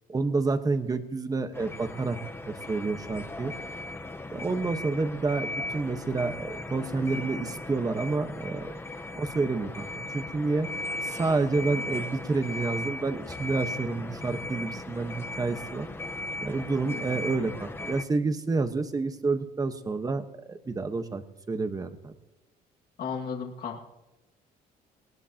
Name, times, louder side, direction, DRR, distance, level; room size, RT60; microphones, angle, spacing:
voice 1, 0.1-2.2 2.5-3.5 4.3-8.7 9.1-10.7 11.0-15.9 16.4-22.1, right 3 dB, 20° right, 8 dB, 1.2 m, -29 dB
sound 1, 1.5-18.0, left 2 dB, 15° left, 1.0 m, -37 dB
voice 2, 16.9-17.2 23.0-23.8, left 6 dB, 60° left, 1 dB, 2.1 m, -35 dB
19.0 x 19.0 x 2.9 m, 1.0 s
cardioid pair, 110°, 17 cm